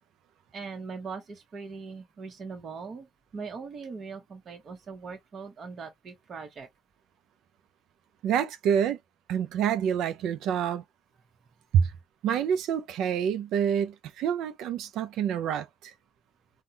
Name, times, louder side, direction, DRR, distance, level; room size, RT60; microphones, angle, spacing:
voice 1, 0.5-3.1 3.3-6.7, right 5 dB, 35° right, 1.0 m, -40 dB
voice 2, 8.2-9.0 9.3-10.8 11.8-11.9 12.2-15.9, right 8 dB, 65° right, 0.5 m, -28 dB
3.6 x 2.2 x 2.7 m
cardioid pair, 130°, 0 cm